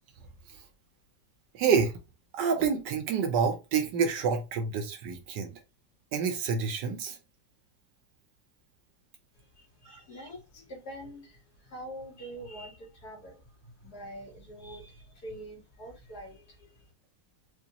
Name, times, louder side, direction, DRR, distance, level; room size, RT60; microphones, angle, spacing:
voice 1, 1.5-1.9 2.3-5.6 6.1-7.2 9.9-10.0, right 6 dB, 75° right, 1.5 m, -28 dB
voice 2, 9.4-16.8, right 1 dB, 65° left, 2.2 m, -45 dB
5.0 x 2.3 x 2.9 m
omnidirectional pair, 1.9 m